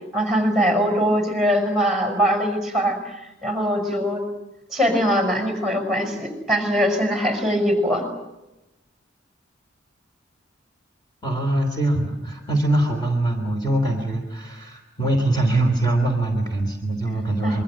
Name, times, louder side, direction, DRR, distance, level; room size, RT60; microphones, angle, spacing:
voice 1, 0.1-4.2 4.7-8.1 17.4-17.6, equal, ahead, 4 dB, 5.9 m, -22 dB
voice 2, 11.2-17.6, right 1 dB, 20° left, 2 dB, 3.2 m, -23 dB
26.5 x 23.5 x 7.6 m, 0.99 s
head